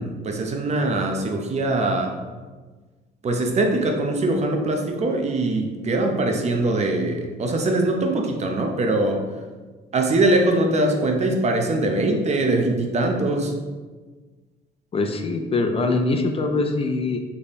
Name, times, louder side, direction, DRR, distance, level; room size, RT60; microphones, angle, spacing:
voice 1, 0.0-2.1 3.2-9.2 9.9-13.5, right 2 dB, 40° right, 2 dB, 0.6 m, -22 dB
voice 2, 14.9-17.2, left 3 dB, 35° left, 5 dB, 0.4 m, -23 dB
3.4 x 2.2 x 4.0 m, 1.3 s
cardioid pair, 85°, 18 cm